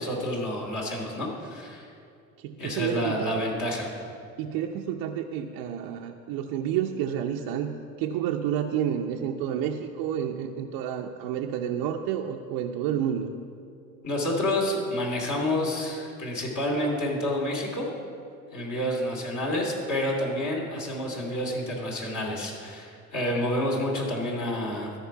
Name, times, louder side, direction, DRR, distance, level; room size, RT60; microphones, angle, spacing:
voice 1, 0.0-1.9 2.6-3.9 14.0-17.9 18.5-24.9, left 1 dB, 45° left, -2 dB, 2.6 m, -29 dB
voice 2, 2.4-3.3 4.4-13.3, right 9 dB, 60° right, 2 dB, 0.7 m, -30 dB
13.0 x 4.7 x 5.8 m, 2.4 s
hypercardioid pair, 65°, 43 cm